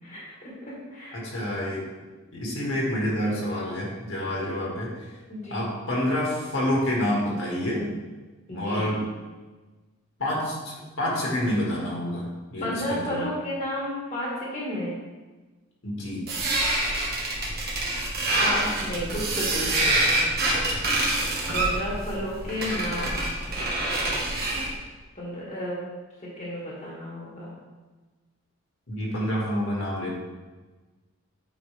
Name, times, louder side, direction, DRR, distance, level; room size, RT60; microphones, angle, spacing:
voice 1, 0.0-1.2 4.2-4.6 5.3-5.7 8.5-8.9 12.6-14.9 18.4-20.2 21.5-23.3 25.2-25.8 26.2-27.5, left 1 dB, 35° left, -5 dB, 1.6 m, -32 dB
voice 2, 1.1-1.8 2.3-5.1 5.5-7.9 8.5-9.1 10.2-13.3 15.8-16.2 28.9-30.1, left 1 dB, 65° left, -4 dB, 1.9 m, -28 dB
sound 1, 16.3-24.7, right 2 dB, 45° right, 1.4 m, -26 dB
8.3 x 5.0 x 3.4 m, 1.3 s
head